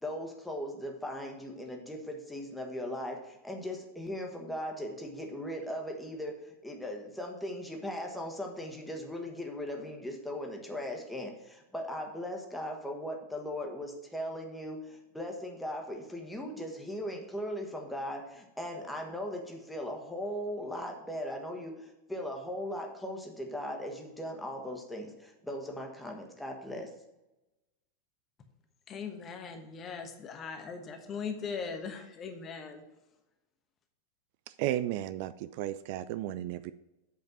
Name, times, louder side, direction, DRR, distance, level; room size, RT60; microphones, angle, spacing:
voice 1, 0.0-26.9, equal, 5° left, 1 dB, 1.5 m, -38 dB
voice 2, 28.9-32.8, left 5 dB, 25° left, 6 dB, 1.1 m, -39 dB
voice 3, 34.5-36.7, right 13 dB, 45° right, 14 dB, 0.3 m, -34 dB
8.1 x 5.1 x 6.2 m, 0.98 s
figure-of-eight pair, 90°, 0 cm